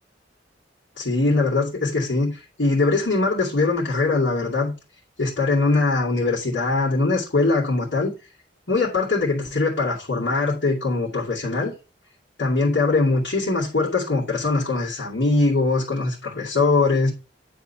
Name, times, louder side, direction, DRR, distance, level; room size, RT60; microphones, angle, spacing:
voice 1, 1.0-4.7 5.2-8.1 8.7-11.7 12.4-17.1, left 3 dB, 85° left, 2.3 m, -22 dB
9.7 x 3.7 x 5.6 m
head